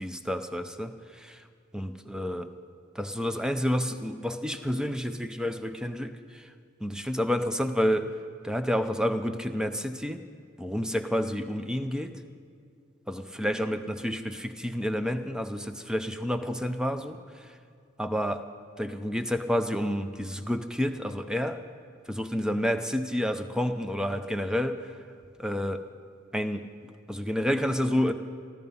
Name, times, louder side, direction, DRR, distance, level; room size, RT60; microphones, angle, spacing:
voice 1, 0.0-1.4 1.7-2.5 2.9-6.5 6.8-8.1 8.4-10.2 10.6-12.1 13.1-17.6 18.0-18.4 18.8-21.6 22.1-25.0 25.4-25.8 26.3-26.7 27.1-28.1, equal, 5° right, 9 dB, 0.5 m, -29 dB
14.0 x 13.5 x 5.4 m, 2.4 s
head